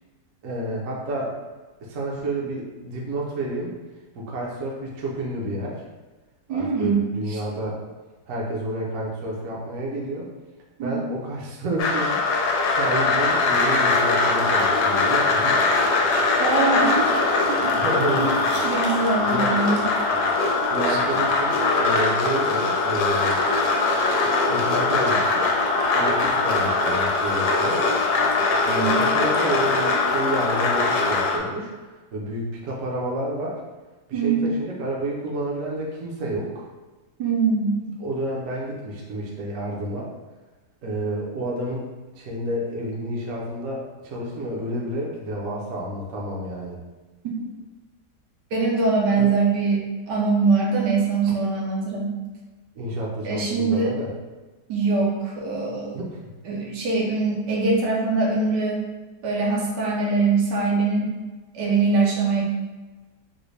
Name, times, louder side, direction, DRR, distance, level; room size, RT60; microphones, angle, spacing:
voice 1, 0.4-1.4 1.8-3.8 4.1-5.8 6.5-7.8 8.3-10.3 10.8-12.2 12.7-15.6 17.8-18.4 19.2-19.5 20.7-23.4 24.5-25.5 25.9-27.8 28.6-31.7 32.1-33.6 34.1-36.7 38.0-40.1 40.8-41.9 42.2-46.8 49.1-49.3 52.8-54.1 55.9-56.2, right 1 dB, 60° right, -3 dB, 0.9 m, -30 dB
voice 2, 6.5-7.0 7.3-7.4 10.8-11.0 16.4-17.9 18.1-18.4 18.6-19.8 20.9-21.0 28.7-29.1 34.1-34.4 37.2-37.8 48.5-52.1 53.2-53.9 54.7-56.0 56.5-58.8 59.2-61.1 61.5-62.4, right 4 dB, 75° right, -3 dB, 1.2 m, -23 dB
sound 1, 11.8-31.4, left 3 dB, 90° left, 1.3 m, -21 dB
3.8 x 2.1 x 3.2 m, 1.2 s
omnidirectional pair, 1.9 m